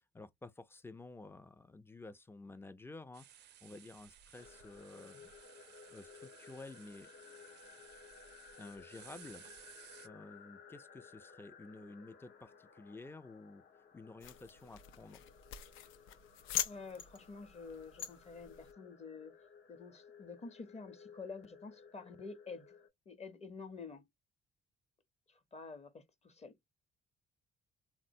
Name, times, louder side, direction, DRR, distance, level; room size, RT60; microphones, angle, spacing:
voice 1, 0.1-5.3 5.9-7.1 8.6-9.5 9.7-13.6 13.9-15.2, left 3 dB, 10° left, 0.3 m, -52 dB
sound 1, 3.1-10.1, right 11 dB, 60° right, 0.4 m, -59 dB
sound 2, 4.4-22.9, left 6 dB, 65° left, 0.8 m, -58 dB
sound 3, 14.2-18.7, left 10 dB, 85° left, 0.4 m, -43 dB
voice 2, 16.6-19.3 19.7-22.7 23.1-24.1 25.3-26.6, left 4 dB, 35° left, 0.7 m, -49 dB
3.6 x 2.0 x 2.6 m
cardioid pair, 90°, 20 cm